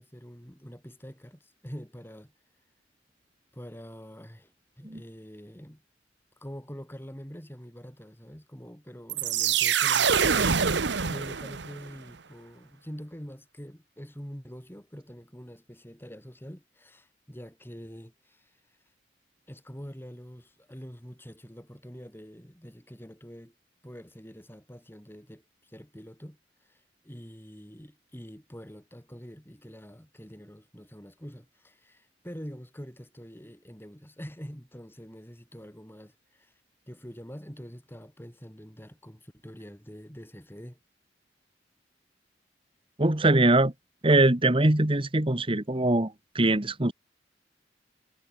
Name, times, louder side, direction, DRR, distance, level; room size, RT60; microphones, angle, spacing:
voice 1, 0.0-2.3 3.5-5.8 6.4-18.8 19.5-23.5 23.8-36.6 36.9-40.8, equal, 10° left, 6.8 m, -45 dB
sound 1, 9.1-11.9, right 6 dB, 70° right, 1.1 m, -25 dB
voice 2, 43.0-43.7 44.0-46.9, right 2 dB, 30° right, 1.5 m, -22 dB
head